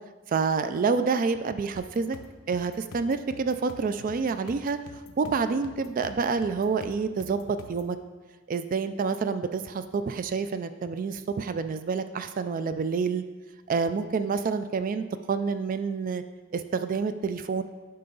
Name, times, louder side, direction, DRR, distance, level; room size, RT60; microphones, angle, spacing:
voice 1, 0.3-2.2 2.5-4.8 5.2-8.0 8.5-13.2 13.7-16.2 16.5-17.6, right 5 dB, 40° right, 11 dB, 0.3 m, -28 dB
sound 1, 1.7-7.9, left 2 dB, 85° left, 0.7 m, -47 dB
9.2 x 5.6 x 3.9 m, 1.3 s
head